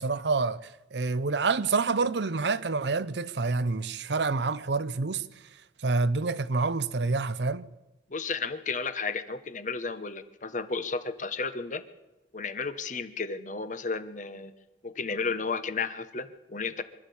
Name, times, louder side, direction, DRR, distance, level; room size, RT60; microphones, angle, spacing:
voice 1, 0.0-5.3 5.8-7.7, right 3 dB, 75° right, 0.8 m, -27 dB
voice 2, 8.1-11.8 12.3-14.5 14.8-16.8, left 4 dB, 45° left, 1.2 m, -33 dB
24.5 x 12.5 x 8.6 m
head